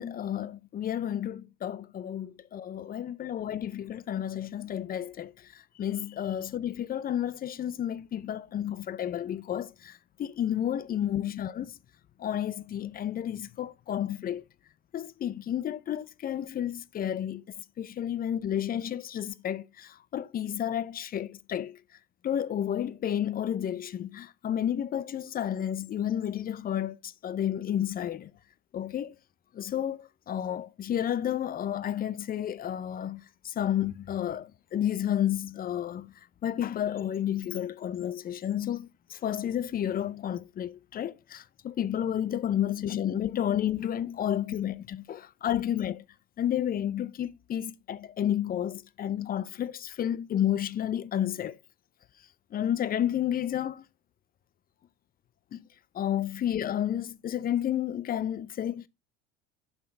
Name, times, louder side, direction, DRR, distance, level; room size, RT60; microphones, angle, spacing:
voice 1, 0.0-5.3 5.8-11.7 12.2-14.4 14.9-17.4 17.8-21.8 22.2-28.3 28.7-29.1 29.5-36.1 36.4-46.0 46.4-51.6 52.5-53.8 55.5-55.6 55.9-58.8, left 10 dB, 25° left, 0.5 m, -31 dB
7.2 x 5.7 x 3.7 m
hypercardioid pair, 90°, 37 cm